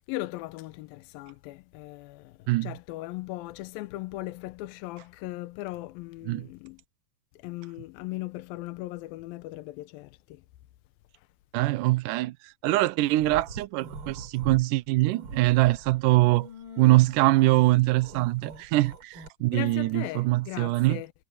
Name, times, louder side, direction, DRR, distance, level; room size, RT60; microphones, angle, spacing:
voice 1, 0.1-6.8 7.3-10.4 11.2-11.3 19.5-21.1, left 18 dB, 80° left, 2.3 m, -38 dB
voice 2, 11.5-16.5 16.8-21.0, right 19 dB, 80° right, 1.9 m, -23 dB
sound 1, 13.1-14.6 15.0-19.3, right 2 dB, 35° right, 4.1 m, -42 dB
omnidirectional pair, 4.5 m